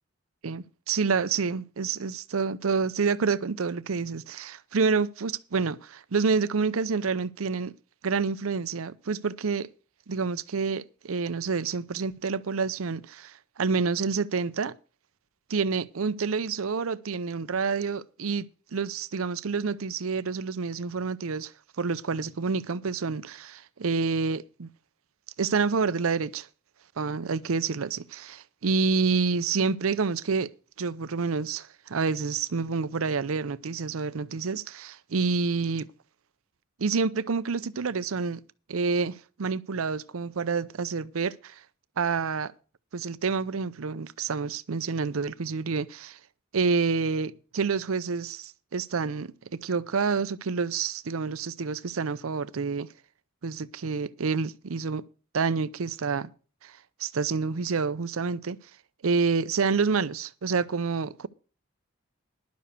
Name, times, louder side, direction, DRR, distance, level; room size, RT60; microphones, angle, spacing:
voice 1, 0.4-7.7 8.0-9.7 10.1-14.7 15.5-18.5 18.7-21.5 21.8-24.7 25.4-26.5 27.0-30.5 30.8-35.9 36.8-38.4 38.7-41.6 42.0-42.5 42.9-46.2 46.5-52.9 53.4-55.0 55.3-56.3 56.6-58.6 59.0-61.3, right 5 dB, 80° right, 0.6 m, -28 dB
11.5 x 6.8 x 6.7 m
head